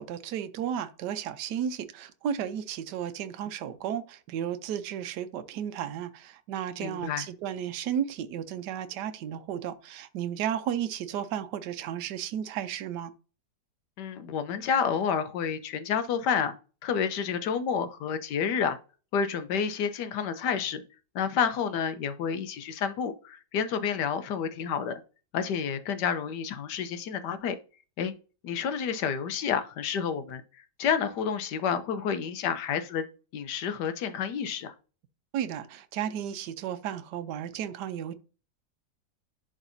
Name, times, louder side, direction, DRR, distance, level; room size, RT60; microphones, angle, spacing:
voice 1, 0.0-13.1 35.3-38.1, right 9 dB, 75° right, 1.3 m, -33 dB
voice 2, 6.8-7.3 14.0-16.5 16.8-18.8 19.1-20.8 21.1-24.9 25.3-27.6 28.0-28.1 28.4-30.4 30.8-33.0 33.3-34.7, left 7 dB, 75° left, 1.4 m, -29 dB
11.0 x 4.0 x 2.7 m
omnidirectional pair, 1.9 m